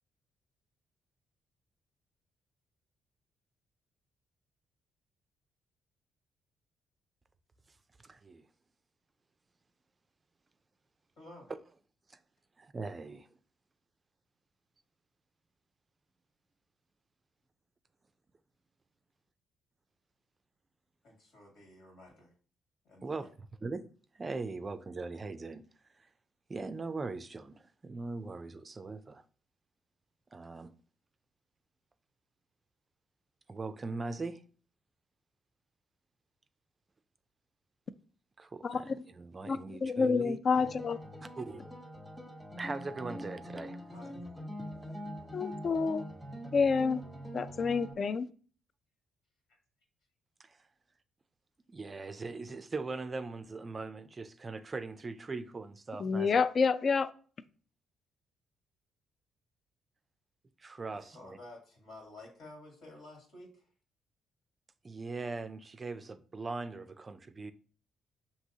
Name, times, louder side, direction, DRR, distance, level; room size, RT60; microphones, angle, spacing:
voice 1, 8.0-8.4 12.1-12.2 12.6-13.3 23.0-23.3 23.6-23.9 24.1-25.6 26.0-26.1 26.5-29.2 30.3-30.7 33.5-34.4 38.4-40.4 41.4-41.6 42.6-43.8 50.4-50.6 51.7-56.4 60.6-61.4 64.8-67.5, right 3 dB, 30° right, 0.3 m, -40 dB
voice 2, 11.2-11.5 21.0-22.3 22.8-23.3 43.9-44.1 60.9-63.7, left 2 dB, 75° left, 1.9 m, -52 dB
voice 3, 38.6-39.0 39.5-41.0 45.3-46.0 46.5-47.0 47.3-48.3 56.0-57.1, left 5 dB, 45° left, 0.3 m, -28 dB
sound 1, 40.6-47.9, equal, 5° left, 1.0 m, -44 dB
6.1 x 2.8 x 2.7 m
cardioid pair, 90°, 0 cm